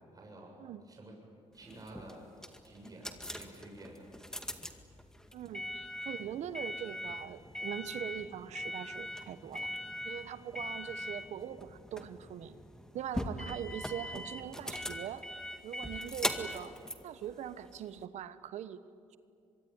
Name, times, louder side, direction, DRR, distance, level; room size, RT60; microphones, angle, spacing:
voice 1, 0.1-0.5 0.9-1.1 1.5-2.2 2.6-4.1, right 1 dB, 30° right, 0 dB, 7.5 m, -50 dB
sound 1, 1.6-18.0, left 1 dB, 5° left, 2.1 m, -41 dB
voice 2, 5.3-9.7 10.0-12.6 12.9-15.2 15.6-16.7 17.0-18.8, right 10 dB, 75° right, 13 dB, 1.1 m, -42 dB
25.0 x 22.5 x 9.7 m, 2.4 s
cardioid pair, 80°, 12 cm